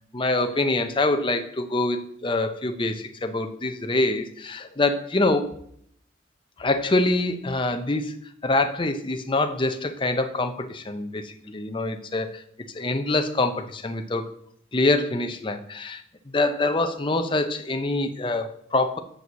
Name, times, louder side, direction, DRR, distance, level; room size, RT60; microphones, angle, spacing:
voice 1, 0.1-5.5 6.6-8.2 8.4-12.4 12.7-14.3 14.7-16.0 16.3-19.0, left 2 dB, 25° left, 6 dB, 0.6 m, -25 dB
6.2 x 5.0 x 6.8 m, 0.67 s
head